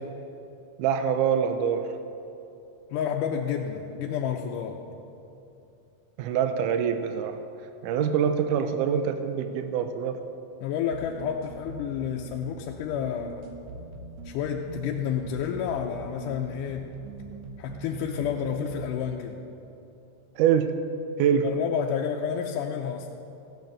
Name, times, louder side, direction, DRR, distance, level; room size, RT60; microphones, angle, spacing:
voice 1, 0.8-1.9 6.2-7.4 7.8-10.2 20.4-20.7 21.2-21.5, right 8 dB, 90° right, 8 dB, 2.2 m, -24 dB
voice 2, 2.9-4.8 10.6-13.4 14.3-16.9 17.6-19.4 21.4-23.1, left 8 dB, 85° left, 1 dB, 2.2 m, -30 dB
sound 1, 10.9-18.9, right 3 dB, 65° right, 2.0 m, -42 dB
15.5 x 9.4 x 6.6 m, 2.8 s
omnidirectional pair, 3.6 m